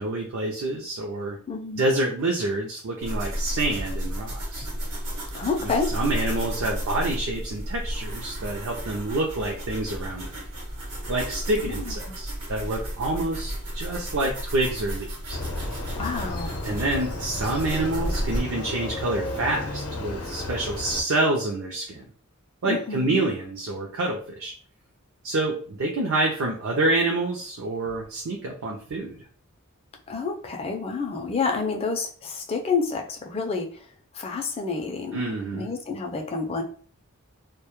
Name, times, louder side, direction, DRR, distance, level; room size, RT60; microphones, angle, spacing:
voice 1, 0.0-1.4 1.8-4.6 5.6-10.3 11.1-15.4 16.6-22.0 22.6-24.5 25.2-29.2 35.1-35.7, right 2 dB, 65° right, 0 dB, 0.4 m, -27 dB
voice 2, 1.5-1.9 5.3-6.0 11.6-12.2 16.0-16.6 22.7-23.2 30.1-33.9 34.1-36.6, left 4 dB, 25° left, 3 dB, 0.4 m, -29 dB
sound 1, 3.0-18.4, equal, 80° right, 0.9 m, -33 dB
Motorcycle, 15.3-21.0, left 2 dB, 85° left, 0.6 m, -33 dB
2.1 x 2.0 x 2.9 m, 0.43 s
head